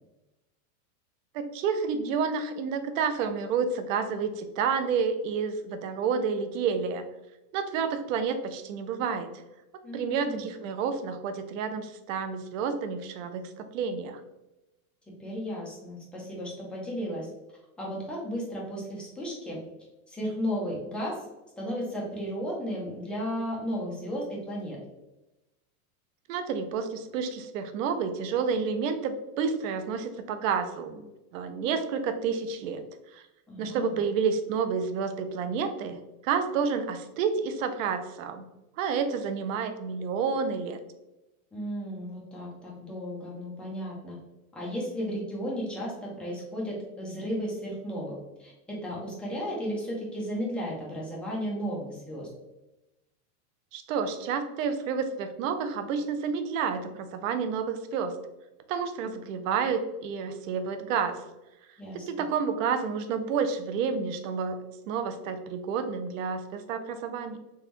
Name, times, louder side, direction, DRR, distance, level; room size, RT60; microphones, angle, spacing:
voice 1, 1.3-7.0 7.5-9.3 9.9-14.2 26.3-31.1 31.3-32.8 33.1-33.2 33.6-38.4 38.8-40.8 53.7-58.2 58.7-61.2 61.9-64.6 64.9-67.4, right 6 dB, 60° right, 8 dB, 0.6 m, -30 dB
voice 2, 9.8-10.5 15.2-17.3 17.8-19.6 20.1-21.2 21.6-24.8 33.5-34.0 41.5-44.2 44.5-52.3 61.8-62.2, equal, ahead, -4 dB, 0.4 m, -34 dB
3.5 x 3.0 x 3.0 m, 0.98 s
supercardioid pair, 150°, 44 cm